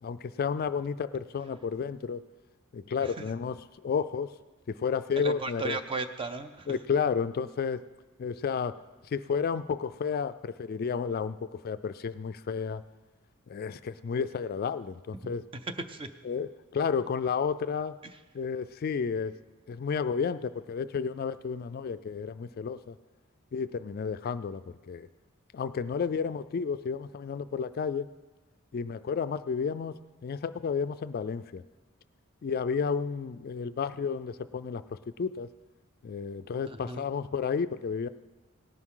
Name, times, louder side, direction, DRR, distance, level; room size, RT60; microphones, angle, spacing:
voice 1, 0.0-2.2 2.7-4.3 4.7-5.8 6.7-7.8 8.2-8.8 9.1-12.8 13.5-15.4 16.2-18.0 18.3-19.3 19.7-22.9 23.5-25.1 25.5-28.1 28.7-31.6 32.4-35.5 36.0-38.1, left 6 dB, 45° left, 12 dB, 0.3 m, -32 dB
voice 2, 5.2-6.7 15.7-16.1 36.7-37.0, right 3 dB, 25° right, 9 dB, 0.6 m, -35 dB
17.5 x 11.0 x 3.8 m, 1.2 s
head